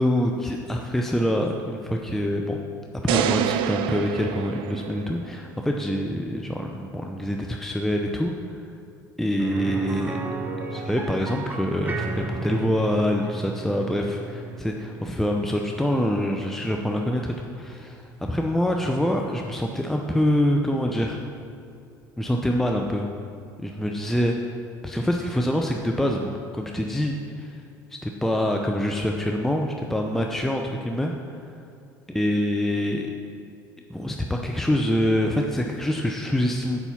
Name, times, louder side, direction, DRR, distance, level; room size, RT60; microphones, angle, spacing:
voice 1, 0.0-2.6 3.0-8.6 9.2-10.2 10.7-21.2 22.2-23.1 23.6-24.3 24.8-27.5 28.0-31.1 32.1-33.1 33.9-36.8, equal, 5° left, 2 dB, 0.7 m, -25 dB
sound 1, 3.1-5.4, right 11 dB, 65° right, 0.4 m, -27 dB
sound 2, 9.4-19.2 19.5-19.6 22.0-22.1, right 3 dB, 20° right, 1.1 m, -35 dB
7.1 x 5.5 x 7.1 m, 2.5 s
hypercardioid pair, 75°, 10 cm